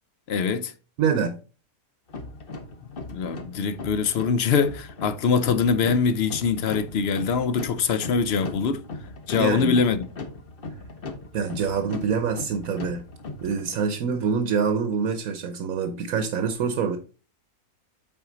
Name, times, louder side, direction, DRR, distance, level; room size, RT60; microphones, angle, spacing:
voice 1, 0.3-0.7 3.1-8.8 9.3-10.1, left 6 dB, 60° left, 0.7 m, -23 dB
voice 2, 1.0-1.4 9.4-9.7 11.3-13.0 13.4-17.0, right 6 dB, 70° right, 1.2 m, -25 dB
sound 1, 2.1-13.9, left 3 dB, 45° left, 1.1 m, -39 dB
7.9 x 4.4 x 3.9 m
omnidirectional pair, 1.6 m